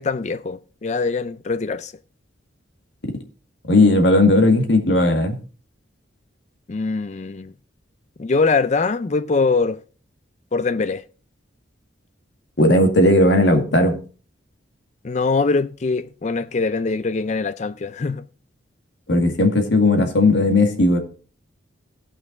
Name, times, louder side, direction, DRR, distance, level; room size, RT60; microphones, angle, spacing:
voice 1, 0.0-1.9 6.7-7.5 8.2-9.8 10.5-11.0 15.0-18.2, left 4 dB, 35° left, 0.4 m, -22 dB
voice 2, 3.7-5.4 12.6-14.0 19.1-21.0, left 2 dB, 65° left, 2.0 m, -16 dB
16.5 x 6.0 x 3.8 m
head